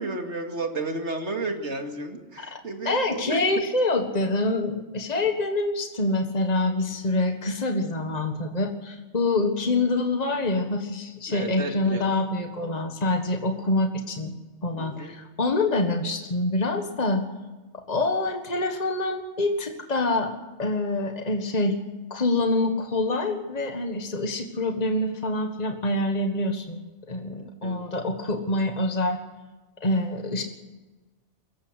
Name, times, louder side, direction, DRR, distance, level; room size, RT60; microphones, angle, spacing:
voice 1, 0.0-3.4 11.3-12.0 14.8-15.1 27.6-27.8, right 2 dB, 85° right, 4 dB, 2.8 m, -32 dB
voice 2, 2.8-14.3 14.6-17.2 17.9-20.3 20.6-21.8 22.1-26.8 27.1-29.2 29.8-30.4, left 2 dB, 35° left, 4 dB, 1.7 m, -26 dB
24.0 x 15.0 x 8.1 m, 1.2 s
omnidirectional pair, 1.2 m